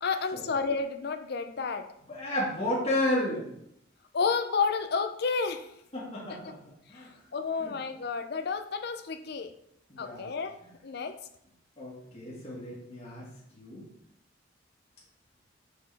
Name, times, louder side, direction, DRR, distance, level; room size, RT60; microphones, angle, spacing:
voice 1, 0.0-1.9 4.1-5.7 6.4-6.5 7.3-9.5 10.0-11.2, left 5 dB, 55° left, 9 dB, 0.5 m, -31 dB
voice 2, 2.1-3.5 5.9-6.6 6.9-7.1 7.6-7.7 9.9-10.3 11.8-13.3 13.5-13.8, left 1 dB, 30° left, -7 dB, 1.7 m, -32 dB
6.2 x 4.9 x 3.4 m, 0.72 s
head